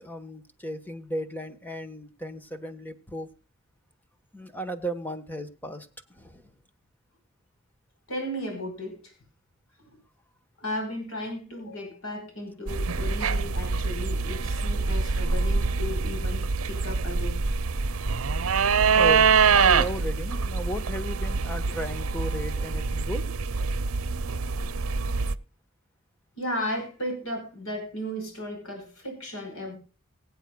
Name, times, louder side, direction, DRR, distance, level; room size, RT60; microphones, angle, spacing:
voice 1, 0.0-3.3 4.3-5.9 6.2-6.5 18.9-23.2, equal, 10° left, 1.2 m, -35 dB
voice 2, 8.1-9.1 9.8-9.9 10.6-17.4 26.3-29.8, left 1 dB, 85° left, 5.1 m, -35 dB
sound 1, 12.7-25.3, right 5 dB, 90° right, 0.7 m, -25 dB
23.5 x 8.2 x 2.3 m
head